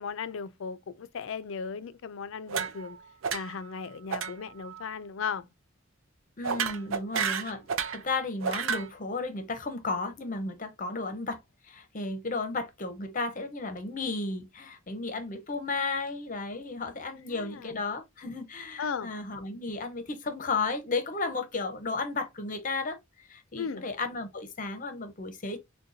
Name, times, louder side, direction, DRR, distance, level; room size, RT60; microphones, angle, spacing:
voice 1, 0.0-3.0 3.3-5.5 17.3-17.8 18.8-19.1 23.6-23.9, left 6 dB, 70° left, 0.4 m, -36 dB
sound 1, 2.5-3.0 3.2-3.7 4.1-4.3 4.6-4.9 6.4-8.0 8.4-8.9, right 6 dB, 75° right, 0.5 m, -31 dB
voice 2, 6.4-25.6, left 3 dB, 40° left, 0.7 m, -34 dB
6.6 x 2.2 x 2.6 m
head